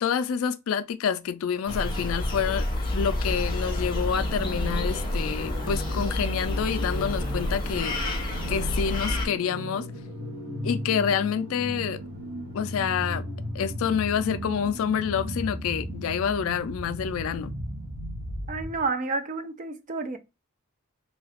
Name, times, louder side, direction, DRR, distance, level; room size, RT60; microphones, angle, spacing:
voice 1, 0.0-8.0 8.5-9.9 10.6-12.0 12.5-13.2 13.5-17.5, left 7 dB, 65° left, 0.3 m, -28 dB
sound 1, 1.7-9.3, left 1 dB, 20° left, 0.7 m, -29 dB
sound 2, 3.9-18.9, right 1 dB, 80° right, 1.0 m, -36 dB
voice 2, 18.5-20.2, right 3 dB, 35° right, 0.4 m, -30 dB
2.7 x 2.3 x 3.4 m
head